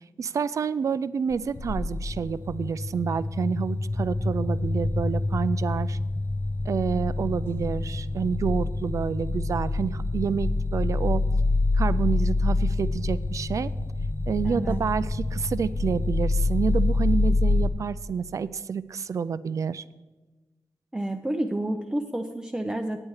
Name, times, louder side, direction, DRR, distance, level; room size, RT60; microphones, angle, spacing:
voice 1, 0.2-6.0 6.6-11.2 11.8-13.7 14.3-19.8, right 6 dB, 55° right, 16 dB, 0.4 m, -28 dB
sound 1, 1.3-17.7, left 2 dB, 35° left, 0.7 m, -26 dB
voice 2, 14.4-14.8 20.9-23.0, right 1 dB, 10° right, 4 dB, 0.6 m, -29 dB
9.7 x 8.9 x 4.8 m, 1.2 s
wide cardioid pair, 85°, 6 cm